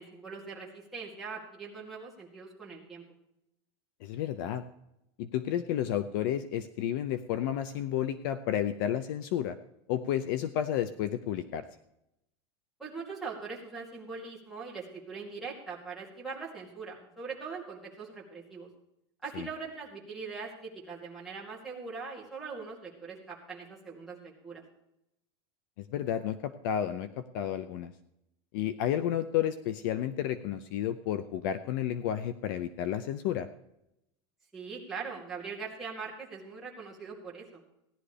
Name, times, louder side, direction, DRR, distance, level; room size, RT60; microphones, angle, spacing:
voice 1, 0.0-3.0 12.8-18.7 19.2-24.6 34.5-37.6, right 5 dB, ahead, -8 dB, 2.4 m, -41 dB
voice 2, 4.0-4.6 5.2-9.6 9.9-11.6 19.3-19.5 25.8-27.9 28.5-33.5, left 10 dB, 50° left, 11 dB, 0.6 m, -31 dB
17.0 x 11.0 x 3.3 m, 0.83 s
supercardioid pair, 175°, 14 cm